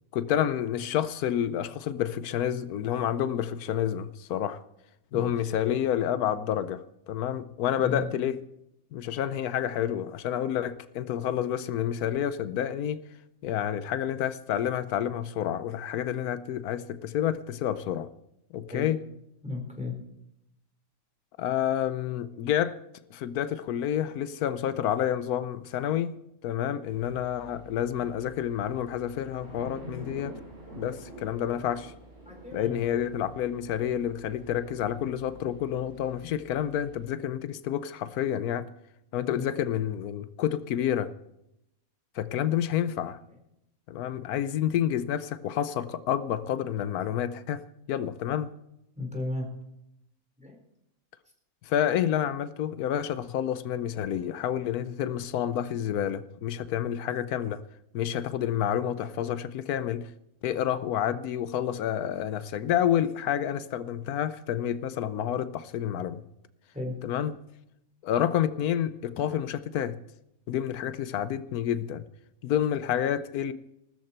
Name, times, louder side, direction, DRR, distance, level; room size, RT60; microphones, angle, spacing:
voice 1, 0.1-4.6 5.1-8.4 8.9-13.0 13.4-18.1 18.5-19.0 21.4-22.8 23.1-30.3 30.8-31.9 32.5-38.7 39.1-41.1 42.1-43.2 43.9-47.6 47.9-48.5 51.6-57.6 57.9-60.1 60.4-66.2 67.0-67.4 68.0-70.0 70.5-72.0 72.4-73.5, left 10 dB, 85° left, 1.2 m, -29 dB
voice 2, 7.8-8.1 18.7-18.9 19.4-19.9 32.3-32.8 39.3-39.4 43.9-44.0 49.0-49.5 50.4-50.6 66.7-67.0, left 3 dB, 5° right, 4.1 m, -34 dB
sound 1, 26.8-37.0, right 1 dB, 80° right, 8.5 m, -47 dB
18.5 x 13.5 x 4.4 m
omnidirectional pair, 1.5 m